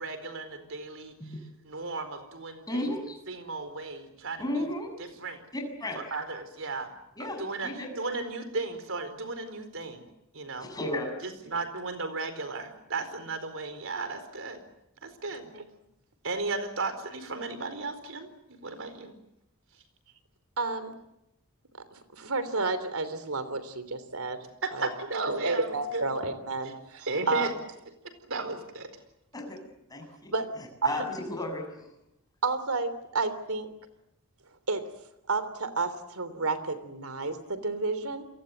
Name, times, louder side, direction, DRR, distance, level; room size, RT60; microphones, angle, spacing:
voice 1, 0.0-1.2 1.7-2.8 3.3-4.4 5.2-5.4 6.1-6.9 7.4-10.0 10.3-10.7 11.2-14.6 15.0-15.5 16.2-19.2 24.6-26.1 27.1-27.5 28.2-28.9, right 3 dB, 65° right, 9 dB, 4.5 m, -35 dB
voice 2, 2.7-3.2 4.4-5.3 5.5-6.0 7.2-7.9 10.6-11.1 11.4-11.5 29.3-29.6 29.9-31.9, left 1 dB, 20° left, 3 dB, 7.3 m, -34 dB
voice 3, 20.6-21.0 21.9-24.4 24.7-24.9 25.4-27.5 30.3-30.5 30.8-30.9 32.4-33.7 34.7-34.8 35.3-38.2, right 3 dB, 80° right, 13 dB, 3.3 m, -31 dB
29.5 x 23.0 x 8.0 m, 0.86 s
head